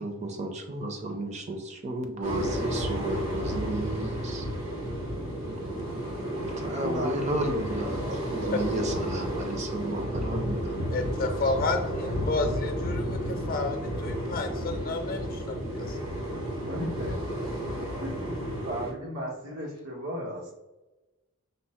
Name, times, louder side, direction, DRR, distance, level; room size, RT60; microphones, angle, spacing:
voice 1, 0.0-4.5 6.6-8.0 8.3-10.8, right 1 dB, 30° right, 4 dB, 0.6 m, -33 dB
sound 1, 2.2-18.9, equal, 70° right, 1.1 m, -32 dB
voice 2, 6.8-8.5 16.7-17.2 18.0-20.5, equal, 90° right, -4 dB, 1.3 m, -36 dB
voice 3, 10.9-16.0, left 3 dB, 45° left, 5 dB, 0.6 m, -31 dB
5.2 x 2.1 x 4.3 m, 1.0 s
head